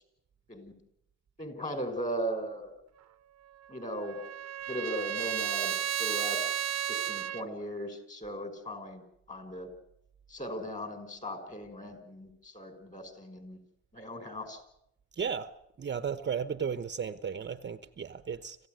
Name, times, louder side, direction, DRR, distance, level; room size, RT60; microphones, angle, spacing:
voice 1, 1.4-2.7 3.7-4.2 4.7-6.5 6.9-9.0 9.3-9.7 10.3-13.6 13.9-14.6, equal, 25° left, 6.0 m, -38 dB
Trumpet, 3.5-7.4, right 10 dB, 60° right, 1.0 m, -33 dB
voice 2, 15.2-15.5 15.8-18.6, right 7 dB, 35° right, 1.1 m, -34 dB
26.0 x 15.5 x 9.4 m
cardioid pair, 90°, 30 cm